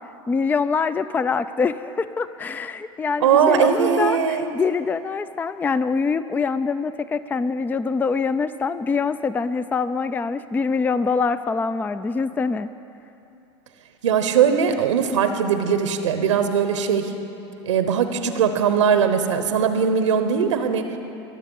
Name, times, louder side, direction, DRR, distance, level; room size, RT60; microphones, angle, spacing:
voice 1, 0.3-12.7, left 5 dB, 10° left, 14 dB, 0.3 m, -24 dB
voice 2, 3.2-4.5 14.0-17.1 17.7-20.8, right 7 dB, 90° right, 8 dB, 0.9 m, -20 dB
22.5 x 7.6 x 5.4 m, 2.9 s
hypercardioid pair, 95°, 15 cm